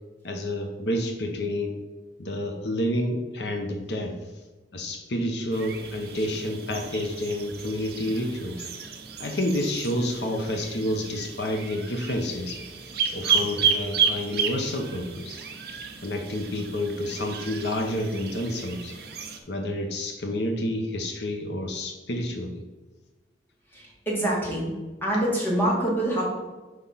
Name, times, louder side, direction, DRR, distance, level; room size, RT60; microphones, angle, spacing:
voice 1, 0.2-1.8 2.2-4.1 4.7-8.7 9.2-12.6 13.1-15.4 16.0-18.9 19.5-22.6, left 1 dB, 70° left, 3 dB, 0.8 m, -29 dB
sound 1, 5.5-19.4, right 6 dB, 60° right, 1.0 m, -32 dB
voice 2, 23.7-24.7 25.0-26.2, right 1 dB, 10° left, -4 dB, 2.2 m, -25 dB
5.9 x 4.9 x 5.6 m, 1.2 s
head